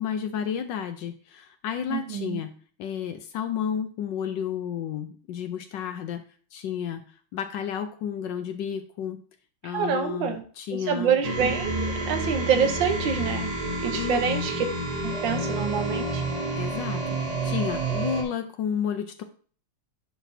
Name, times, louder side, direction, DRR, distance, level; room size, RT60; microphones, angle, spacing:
voice 1, 0.0-2.5 2.8-6.2 6.5-7.0 7.3-9.2 9.6-11.2 13.9-14.2 16.6-17.0 17.4-19.2, left 8 dB, 70° left, 8 dB, 1.1 m, -31 dB
voice 2, 1.9-2.4 9.6-10.4 10.9-13.5 13.8-14.6 15.0-16.2, right 7 dB, 70° right, 7 dB, 1.5 m, -26 dB
sound 1, 11.2-18.2, right 2 dB, 25° right, 0.9 m, -29 dB
11.0 x 4.1 x 2.7 m, 0.43 s
omnidirectional pair, 2.3 m